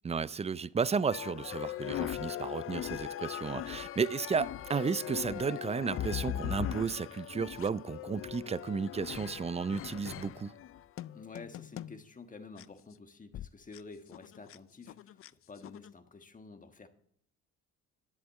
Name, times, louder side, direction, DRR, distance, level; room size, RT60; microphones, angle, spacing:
voice 1, 0.0-10.5, right 5 dB, 20° right, 0.4 m, -33 dB
sound 1, 1.1-12.0 12.6-12.7 13.3-13.5 13.7-13.8 14.1-14.6 14.9-15.3 15.6-15.9, left 12 dB, 50° left, 0.4 m, -40 dB
voice 2, 11.1-16.9, left 4 dB, 25° left, 1.3 m, -50 dB
11.0 x 8.0 x 6.4 m
cardioid pair, 90°, 30 cm